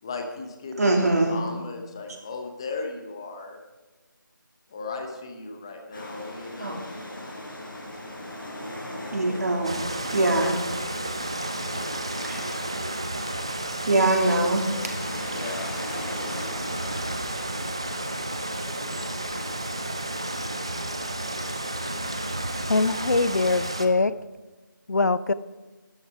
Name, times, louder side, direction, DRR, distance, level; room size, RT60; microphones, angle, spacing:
voice 1, 0.0-3.6 4.7-6.8 15.3-15.7, left 3 dB, 15° left, 4 dB, 0.8 m, -36 dB
voice 2, 0.8-1.4 6.6-6.7 9.1-9.8 10.1-10.6 12.2-12.6 13.8-14.6, right 2 dB, 50° right, 1 dB, 2.5 m, -22 dB
sound 1, 5.9-19.5, left 1 dB, 80° left, 5.3 m, -40 dB
sound 2, 9.6-23.9, right 1 dB, 15° right, 0.4 m, -32 dB
voice 3, 22.7-24.1 24.9-25.3, left 3 dB, 55° left, 17 dB, 0.5 m, -22 dB
13.0 x 10.5 x 4.9 m, 1.2 s
figure-of-eight pair, 170°, 11 cm